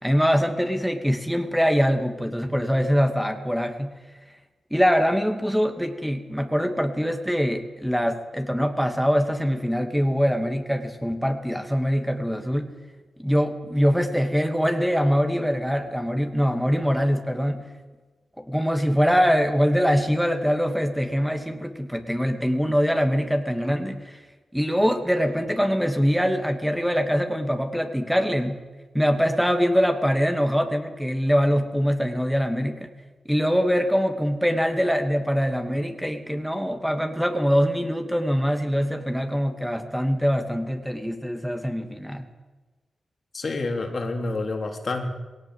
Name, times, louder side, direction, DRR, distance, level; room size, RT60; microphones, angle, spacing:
voice 1, 0.0-4.0 4.7-12.7 13.2-17.7 18.4-24.2 24.5-28.6 28.9-32.9 33.2-42.3, equal, ahead, 6 dB, 2.6 m, -23 dB
voice 2, 43.3-45.1, left 3 dB, 55° left, 3 dB, 3.8 m, -28 dB
19.5 x 18.0 x 8.1 m, 1.3 s
supercardioid pair, 40°, 0 cm